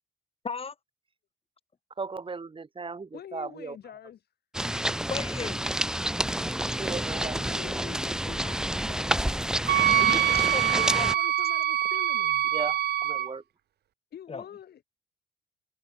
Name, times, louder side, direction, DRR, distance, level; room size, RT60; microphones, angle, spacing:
voice 1, 2.0-3.8 6.8-7.9 12.5-13.4, right 4 dB, 30° right, 6.5 m, -37 dB
voice 2, 3.1-4.2 7.3-9.6 11.1-12.4 14.1-14.8, left 9 dB, 65° left, 6.3 m, -45 dB
sound 1, 4.5-11.1, right 1 dB, 5° right, 1.2 m, -29 dB
voice 3, 5.1-5.6 10.0-11.2 14.3-14.5, left 5 dB, 30° left, 4.0 m, -35 dB
Wind instrument woodwind instrument, 9.7-13.3, right 11 dB, 65° right, 1.0 m, -24 dB
cardioid pair, 105°, 18 cm